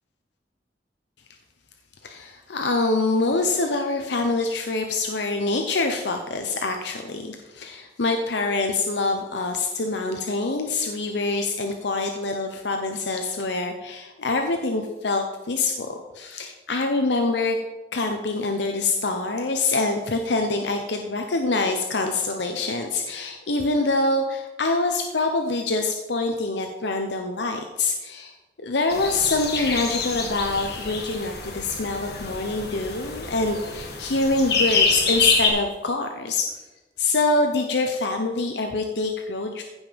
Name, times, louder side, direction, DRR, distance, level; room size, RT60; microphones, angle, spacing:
voice 1, 2.0-17.6 17.9-36.5 37.0-39.6, left 3 dB, 80° left, 4 dB, 0.9 m, -25 dB
sound 1, 28.9-35.5, left 4 dB, 65° left, 2.4 m, -26 dB
15.0 x 5.5 x 5.2 m, 1.2 s
head